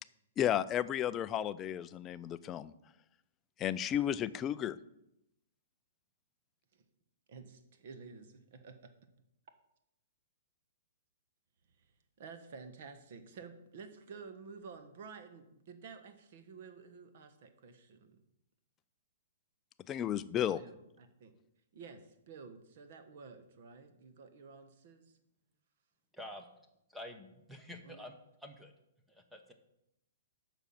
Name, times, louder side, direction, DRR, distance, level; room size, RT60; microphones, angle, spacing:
voice 1, 0.4-2.7 3.6-4.8 19.9-20.6, left 10 dB, 15° left, 13 dB, 0.3 m, -33 dB
voice 2, 7.3-8.9 11.8-11.9 12.2-18.2 20.5-21.3 21.7-25.1 27.8-28.0, right 5 dB, 45° right, 8 dB, 1.2 m, -51 dB
voice 3, 26.1-26.5 26.9-28.7 29.1-29.4, left 1 dB, ahead, 4 dB, 0.9 m, -48 dB
9.0 x 6.1 x 7.2 m, 0.84 s
hypercardioid pair, 170°, 0 cm